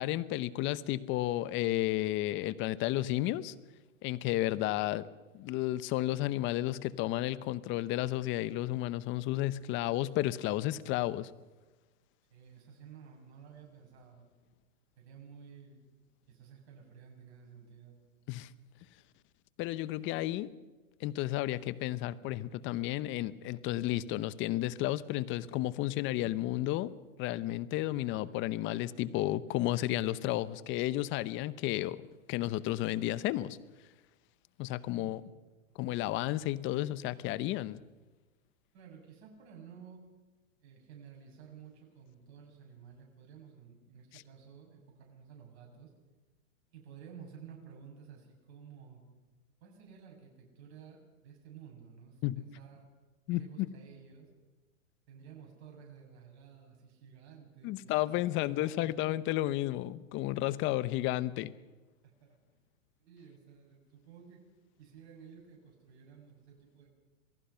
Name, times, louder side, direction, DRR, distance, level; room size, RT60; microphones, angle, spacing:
voice 1, 0.0-3.5 4.0-5.1 5.3-11.3 18.3-18.5 19.6-20.5 21.0-26.9 27.2-32.0 32.3-33.6 34.6-35.2 35.8-37.8 44.1-44.2 52.2-52.4 53.3-53.4 57.6-61.5, left 15 dB, 30° left, 17 dB, 0.9 m, -32 dB
voice 2, 12.3-14.2 15.0-15.8 16.3-18.0 34.9-35.4 38.7-40.0 40.6-45.9 46.7-49.0 49.6-52.9 53.3-54.3 55.1-58.8 62.2-62.4 63.0-64.4 64.8-66.9, right 7 dB, 50° right, 1 dB, 6.7 m, -53 dB
27.5 x 18.0 x 5.7 m, 1.2 s
hypercardioid pair, 130°, 40 cm